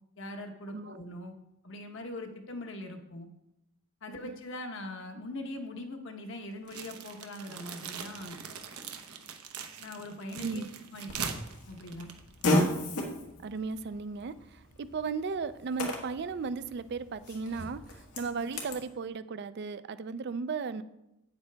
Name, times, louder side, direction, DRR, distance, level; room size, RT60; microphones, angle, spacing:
voice 1, 0.2-1.3 1.6-3.3 4.0-8.4 9.8-10.6 10.9-11.4 11.7-12.1, left 1 dB, 55° left, 4 dB, 1.0 m, -41 dB
sound 1, 6.7-12.8, right 6 dB, 90° right, 0.9 m, -41 dB
Fart, 11.1-18.8, left 1 dB, 90° left, 1.7 m, -35 dB
voice 2, 13.4-20.8, right 4 dB, 50° right, 14 dB, 0.4 m, -36 dB
8.9 x 8.0 x 3.4 m, 0.88 s
head